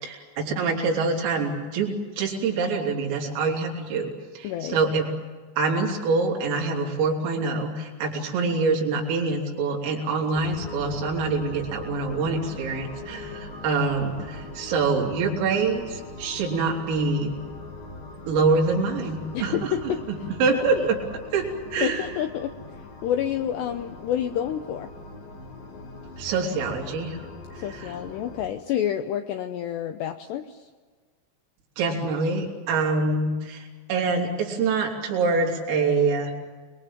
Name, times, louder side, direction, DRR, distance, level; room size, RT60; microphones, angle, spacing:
voice 1, 0.0-4.1 4.4-5.1 5.6-17.4 18.3-19.7 20.1-21.0 21.3-22.0 26.2-27.2 27.7-27.9 31.8-33.6 33.9-36.3, right 4 dB, 80° right, 0 dB, 5.8 m, -25 dB
voice 2, 4.4-4.8 19.3-20.0 20.5-20.9 21.8-24.9 27.6-30.7, left 10 dB, 75° left, 7 dB, 2.6 m, -29 dB
sound 1, 10.3-28.5, left 2 dB, 50° left, 3.6 m, -41 dB
29.0 x 22.0 x 7.4 m, 1.4 s
omnidirectional pair, 5.8 m